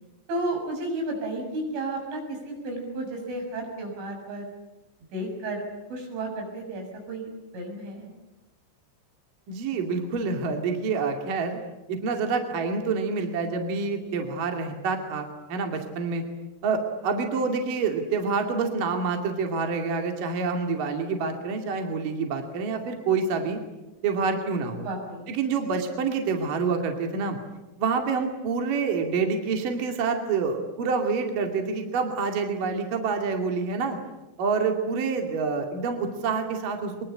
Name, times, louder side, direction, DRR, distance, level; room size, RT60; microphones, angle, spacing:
voice 1, 0.3-4.5 5.1-5.6 5.9-8.1 24.8-25.3, right 2 dB, 75° right, 2 dB, 9.1 m, -32 dB
voice 2, 9.5-11.6 11.9-16.2 16.6-23.6 24.0-24.9 25.3-27.4 27.8-34.0 34.4-36.9, right 4 dB, 50° right, 4 dB, 3.6 m, -27 dB
23.5 x 23.5 x 9.9 m, 1.0 s
omnidirectional pair, 5.6 m